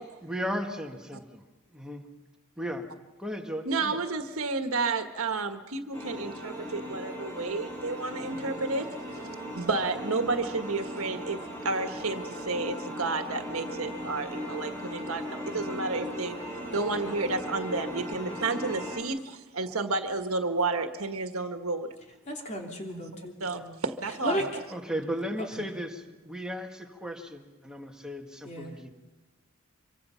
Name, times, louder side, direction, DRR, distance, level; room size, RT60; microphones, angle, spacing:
voice 1, 0.2-1.4 1.7-2.1 2.6-2.9 3.2-4.0 24.7-28.9, equal, 5° right, 2 dB, 1.9 m, -35 dB
voice 2, 3.6-8.9 9.5-16.4 16.7-21.9 22.9-23.0 23.4-24.5, right 3 dB, 75° right, 7 dB, 1.6 m, -31 dB
sound 1, 5.9-19.0, equal, 15° left, 4.7 m, -38 dB
voice 3, 8.2-8.6 22.3-23.7 24.2-24.6 25.4-25.7 28.4-28.7, equal, 35° left, 1 dB, 3.3 m, -35 dB
25.5 x 24.0 x 5.8 m, 1.2 s
head